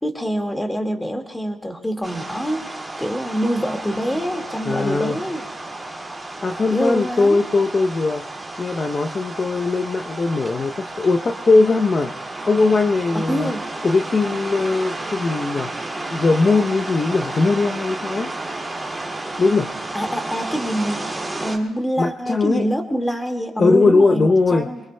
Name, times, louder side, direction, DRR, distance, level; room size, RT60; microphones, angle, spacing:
voice 1, 0.0-5.5 6.7-7.4 13.3-13.6 19.9-21.1 21.4-24.8, equal, 10° left, 4 dB, 1.9 m, -25 dB
sound 1, 2.0-21.6, right 2 dB, 10° right, 2.3 m, -32 dB
voice 2, 4.7-5.2 6.4-8.2 8.6-12.1 12.5-13.5 13.8-15.7 16.1-18.3 19.4-19.7 22.0-22.6 23.6-24.7, left 3 dB, 35° left, 5 dB, 0.7 m, -19 dB
24.5 x 23.0 x 2.2 m, 1.1 s
cardioid pair, 90°, 0 cm